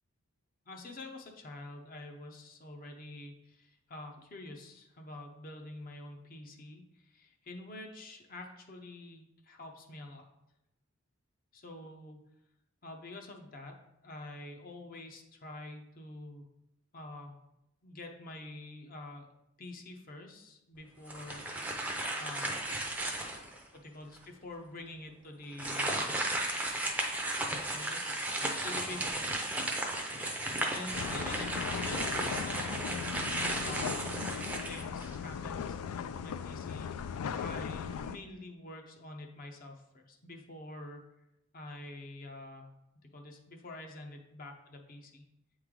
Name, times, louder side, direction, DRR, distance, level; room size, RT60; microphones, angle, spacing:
voice 1, 0.7-10.2 11.5-12.2 12.8-13.8 14.0-16.4 16.9-17.4 17.8-19.3 19.6-22.6 23.7-25.9 27.6-28.1 28.6-29.3 30.7-33.0 33.6-34.1 34.7-35.8 36.2-41.0 41.5-42.7 43.0-45.2, left 2 dB, 40° left, 3 dB, 0.6 m, -47 dB
sound 1, 21.1-23.6 24.2-24.3 25.5-35.3, right 1 dB, 5° right, 0.5 m, -34 dB
sound 2, 30.9-38.2, left 7 dB, 85° left, 0.3 m, -38 dB
8.6 x 3.2 x 3.7 m, 0.86 s
head